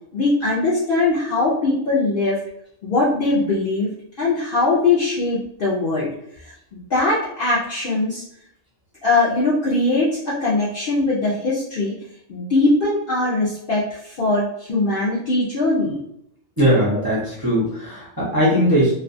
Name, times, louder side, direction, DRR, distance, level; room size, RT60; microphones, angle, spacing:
voice 1, 0.1-2.4 2.8-3.9 4.2-6.1 6.4-8.2 9.0-11.9 12.3-16.0 17.0-17.1, left 2 dB, 65° left, -7 dB, 0.5 m, -21 dB
voice 2, 16.6-18.9, equal, 30° right, -8 dB, 0.4 m, -19 dB
2.4 x 2.2 x 2.6 m, 0.75 s
omnidirectional pair, 1.4 m